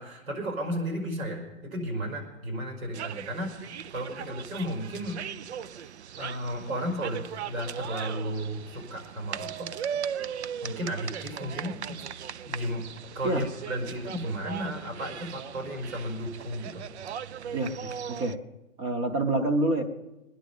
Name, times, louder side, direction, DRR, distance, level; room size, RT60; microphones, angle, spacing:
voice 1, 0.0-5.2 6.2-9.7 10.6-12.8 13.1-16.8, equal, 85° right, 1 dB, 5.4 m, -34 dB
sound 1, 2.9-18.4, right 8 dB, 55° right, 0.5 m, -38 dB
voice 2, 17.5-18.4 18.8-19.8, right 2 dB, 10° right, 5 dB, 0.8 m, -27 dB
20.5 x 10.5 x 5.4 m, 1.0 s
hypercardioid pair, 150°, 40 cm